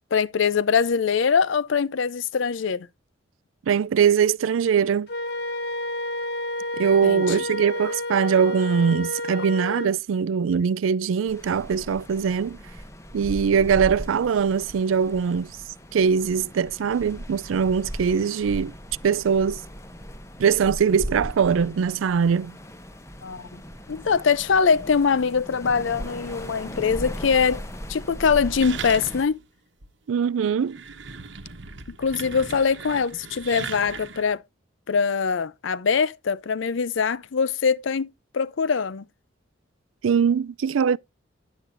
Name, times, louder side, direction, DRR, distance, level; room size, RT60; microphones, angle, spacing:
voice 1, 0.1-2.9 7.0-7.4 23.2-23.6 23.9-27.6 27.9-29.4 32.0-34.4 34.9-38.1 38.3-39.0, left 6 dB, 70° left, 0.5 m, -23 dB
voice 2, 3.7-5.1 6.8-12.6 13.1-15.5 15.9-18.7 19.0-19.6 20.4-22.6 30.1-30.8 40.0-41.0, right 6 dB, 80° right, 0.4 m, -22 dB
Wind instrument woodwind instrument, 5.1-9.9, left 1 dB, 55° left, 1.2 m, -30 dB
sound 1, 11.3-29.3, equal, 15° left, 0.8 m, -38 dB
sound 2, 28.6-29.4 29.8-29.9 30.5-34.3, right 5 dB, 65° right, 1.1 m, -38 dB
10.0 x 8.2 x 2.6 m
head